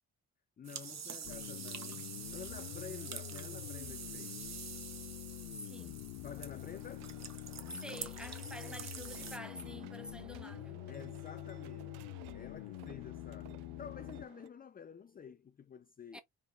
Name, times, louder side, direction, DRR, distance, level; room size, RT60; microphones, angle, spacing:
voice 1, 0.6-4.5 6.2-7.1 10.9-16.2, left 7 dB, 25° left, 0.4 m, -50 dB
sound 1, 0.6-9.4, right 7 dB, 40° right, 1.2 m, -47 dB
sound 2, 1.2-14.3, left 18 dB, 70° left, 0.6 m, -46 dB
voice 2, 5.5-6.1 7.7-10.9 16.1-16.2, equal, ahead, 1.0 m, -48 dB
sound 3, 6.2-14.5, right 15 dB, 70° right, 0.6 m, -57 dB
4.6 x 4.0 x 2.4 m
hypercardioid pair, 45°, 41 cm